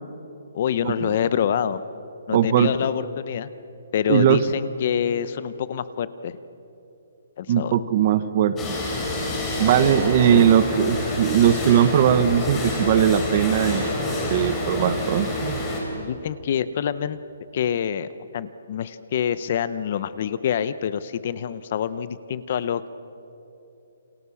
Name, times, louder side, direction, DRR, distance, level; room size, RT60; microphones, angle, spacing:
voice 1, 0.5-1.8 2.3-3.5 3.9-6.4 7.4-7.8 10.3-10.4 15.9-17.2 17.5-22.9, left 8 dB, 35° left, 15 dB, 0.7 m, -26 dB
voice 2, 2.3-2.7 4.1-4.4 7.5-8.5 9.6-13.9 14.3-15.6, right 9 dB, 25° right, 13 dB, 0.9 m, -19 dB
sound 1, 8.6-15.8, left 1 dB, 10° left, 3.6 m, -27 dB
29.0 x 28.5 x 7.1 m, 2.8 s
hypercardioid pair, 175°, 0 cm